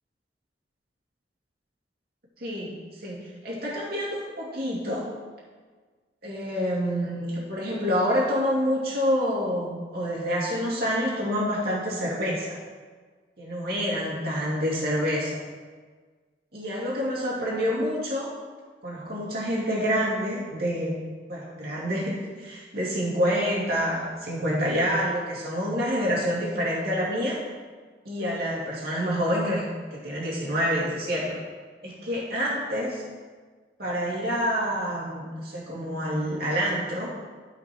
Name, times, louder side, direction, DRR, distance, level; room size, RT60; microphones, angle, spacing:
voice 1, 2.4-5.0 6.2-12.6 13.4-15.4 16.5-18.3 18.8-21.0 21.3-27.4 28.0-29.6 29.9-31.3 31.8-33.0 33.8-37.1, equal, 60° right, -6 dB, 2.5 m, -27 dB
13.0 x 5.2 x 3.1 m, 1.5 s
head